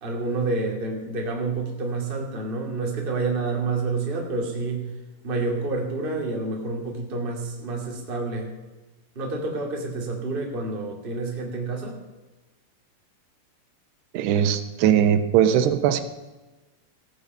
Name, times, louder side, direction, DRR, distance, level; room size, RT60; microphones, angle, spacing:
voice 1, 0.0-4.9 5.2-8.5 9.1-12.0, right 3 dB, 20° right, 0 dB, 1.8 m, -28 dB
voice 2, 14.1-16.0, right 9 dB, 80° right, 9 dB, 2.9 m, -20 dB
17.0 x 9.0 x 5.4 m, 1.2 s
omnidirectional pair, 4.8 m